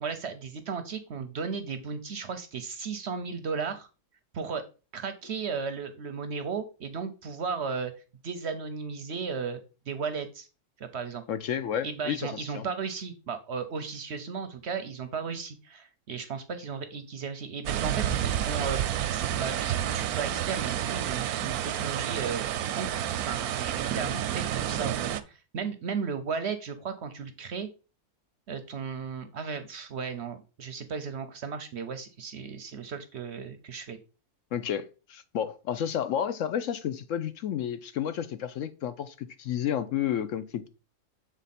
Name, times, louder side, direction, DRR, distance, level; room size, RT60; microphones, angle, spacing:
voice 1, 0.0-3.9 4.3-4.6 4.9-7.9 8.2-9.6 9.9-10.5 10.8-11.2 11.8-18.8 19.1-22.9 23.2-27.7 28.5-34.0, right 5 dB, 60° right, 0.8 m, -35 dB
voice 2, 11.3-12.7 34.5-40.7, left 9 dB, 70° left, 0.8 m, -31 dB
sound 1, 17.7-25.2, right 10 dB, 85° right, 1.1 m, -30 dB
7.3 x 3.9 x 4.1 m
omnidirectional pair, 1.5 m